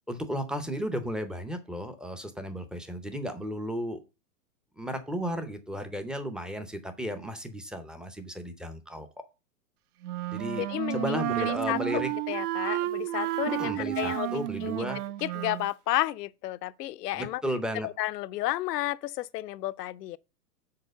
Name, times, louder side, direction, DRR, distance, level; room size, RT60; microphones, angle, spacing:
voice 1, 0.1-4.0 4.8-9.1 10.3-12.1 13.5-15.0 17.1-17.9, equal, ahead, 0.5 m, -34 dB
Wind instrument woodwind instrument, 10.0-15.7, right 16 dB, 65° right, 0.6 m, -31 dB
voice 2, 10.6-12.0 12.3-14.9 15.2-17.4 17.8-20.2, left 15 dB, 75° left, 0.6 m, -32 dB
6.7 x 4.3 x 6.7 m
hypercardioid pair, 125°, 49 cm